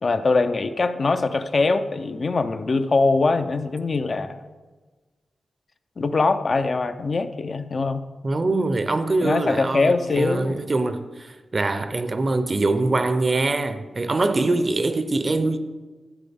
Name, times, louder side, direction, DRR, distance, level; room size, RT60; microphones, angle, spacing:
voice 1, 0.0-4.4 6.0-8.0 9.2-10.6, left 3 dB, 50° left, 0.5 m, -22 dB
voice 2, 8.2-15.6, right 2 dB, 35° right, 0.6 m, -23 dB
12.5 x 8.5 x 3.5 m
wide cardioid pair, 110°, 0 cm